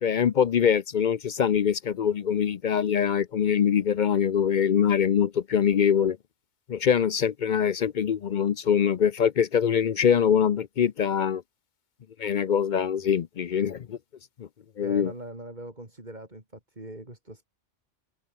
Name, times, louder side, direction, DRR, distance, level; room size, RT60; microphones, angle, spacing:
voice 1, 0.0-6.2 6.7-11.4 12.2-14.0 14.4-14.5 14.8-15.1, left 8 dB, 55° left, 0.6 m, -23 dB
voice 2, 14.8-17.4, right 1 dB, 35° right, 5.0 m, -41 dB
omnidirectional pair, 1.3 m